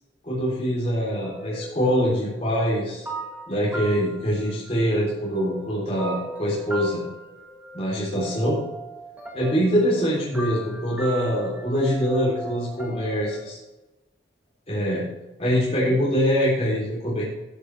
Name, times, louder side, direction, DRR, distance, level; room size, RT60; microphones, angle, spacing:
voice 1, 0.2-3.1 3.5-7.0 7.7-8.6 9.3-13.6 14.7-15.1 15.4-17.3, equal, 35° left, -7 dB, 3.5 m, -24 dB
sound 1, 1.1-5.1 5.4-13.4, right 1 dB, 10° right, 1.7 m, -38 dB
12.5 x 10.0 x 3.4 m, 1.1 s
head